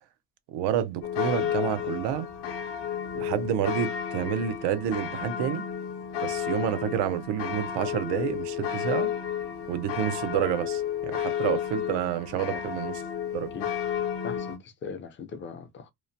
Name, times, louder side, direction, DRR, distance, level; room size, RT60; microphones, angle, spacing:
voice 1, 0.5-2.3 3.1-5.6 6.2-9.1 9.7-12.9 13.3-13.5, right 10 dB, 75° right, 0.6 m, -29 dB
sound 1, 1.0-14.6, left 9 dB, 75° left, 0.8 m, -32 dB
voice 2, 14.2-15.9, left 5 dB, 30° left, 0.5 m, -39 dB
2.9 x 2.1 x 2.6 m
cardioid pair, 130°, 41 cm